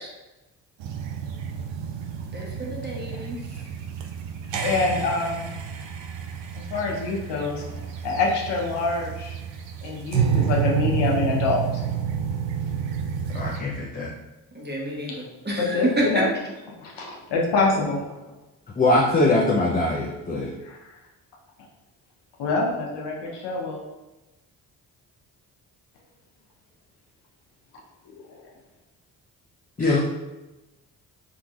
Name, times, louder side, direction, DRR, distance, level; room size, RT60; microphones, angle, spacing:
sound 1, 0.8-13.6, right 7 dB, 70° right, 0.6 m, -29 dB
voice 1, 2.3-3.4 14.5-16.3 29.8-30.0, right 1 dB, 20° right, -3 dB, 1.1 m, -28 dB
voice 2, 4.6-5.5 6.7-9.4 9.8-11.8 15.1-15.2 15.6-16.3 16.8-18.3 20.6-20.8 22.4-23.8, left 3 dB, 65° left, -1 dB, 0.9 m, -26 dB
voice 3, 13.3-14.1 18.8-20.5 29.8-30.0, left 2 dB, 20° left, -4 dB, 0.6 m, -22 dB
3.6 x 2.8 x 2.5 m, 1.0 s
hypercardioid pair, 40°, 46 cm